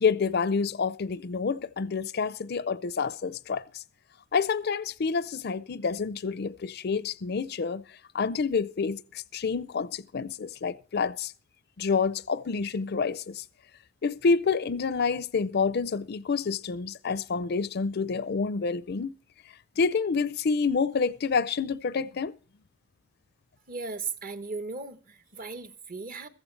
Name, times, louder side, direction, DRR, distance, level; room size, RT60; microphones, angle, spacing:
voice 1, 0.0-3.8 4.3-7.8 8.1-11.3 11.8-13.4 14.0-19.1 19.8-22.3, left 5 dB, 50° left, 0.5 m, -28 dB
voice 2, 23.7-26.3, right 4 dB, 45° right, 0.9 m, -37 dB
15.0 x 14.5 x 3.2 m
head